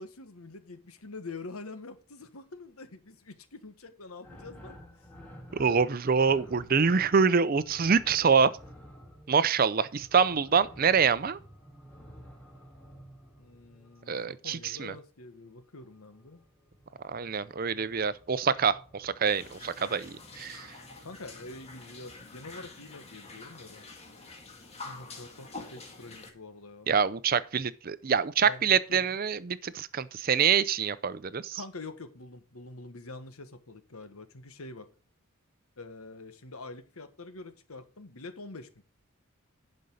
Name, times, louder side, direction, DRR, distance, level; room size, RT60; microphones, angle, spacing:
voice 1, 0.0-4.8 13.4-16.4 21.0-23.8 24.8-26.9 28.4-29.0 31.5-34.9 35.8-38.7, left 3 dB, 80° left, 1.4 m, -45 dB
sound 1, 4.2-14.2 15.7-22.6, equal, 5° left, 3.1 m, -52 dB
voice 2, 5.5-8.5 9.3-11.4 14.1-14.9 17.0-20.7 26.9-31.6, right 6 dB, 40° right, 0.5 m, -25 dB
sound 2, 19.3-26.3, left 3 dB, 30° left, 1.9 m, -47 dB
11.0 x 5.3 x 6.4 m
head